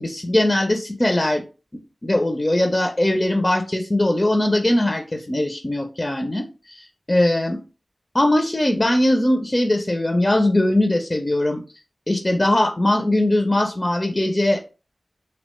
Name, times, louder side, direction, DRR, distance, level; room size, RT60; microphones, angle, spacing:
voice 1, 0.0-1.4 2.0-7.6 8.1-11.6 12.1-14.6, left 1 dB, 30° left, 4 dB, 0.4 m, -20 dB
2.8 x 2.1 x 2.9 m, 0.33 s
cardioid pair, 40°, 0 cm